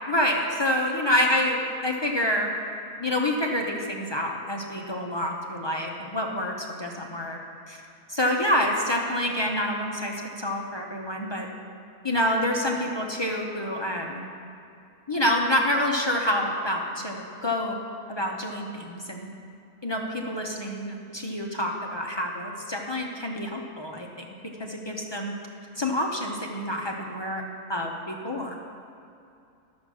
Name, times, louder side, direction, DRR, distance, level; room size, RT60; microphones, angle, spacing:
voice 1, 0.1-2.5 3.0-7.4 7.7-7.8 8.1-10.1 10.4-11.5 12.0-14.2 15.1-17.8 18.1-19.3 19.8-24.3 24.6-25.3 25.8-27.4 27.7-28.6, left 1 dB, 25° left, 0 dB, 0.6 m, -27 dB
11.0 x 7.3 x 6.2 m, 2.5 s
omnidirectional pair, 1.6 m